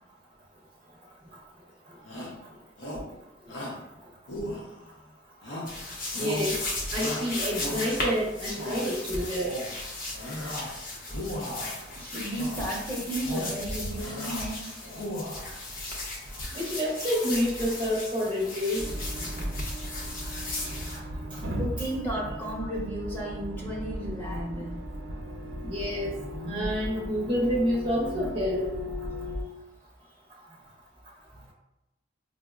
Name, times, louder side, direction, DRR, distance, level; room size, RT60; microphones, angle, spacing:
Shout, 2.0-2.4 2.8-3.1 3.5-3.8 4.3-5.0 5.4-5.8 6.1-6.5 6.9-8.1 8.4-8.9 9.3-9.7 10.1-10.7 11.1-11.8 12.3-12.7 13.1-13.6 13.9-14.5 14.8-15.5, left 1 dB, 85° left, 0.7 m, -36 dB
sound 1, 5.7-21.0, left 2 dB, 50° left, 0.6 m, -36 dB
voice 1, 6.1-6.6 6.9-9.6 16.5-18.9 21.3-21.4 25.6-26.2 26.5-28.7, equal, 25° right, -4 dB, 0.5 m, -28 dB
voice 2, 11.9-14.9 21.4-24.8 31.3-31.5, right 1 dB, 10° left, -4 dB, 0.8 m, -34 dB
sound 2, 18.8-29.4, equal, 85° right, 0.5 m, -36 dB
4.8 x 2.0 x 2.3 m, 0.96 s
head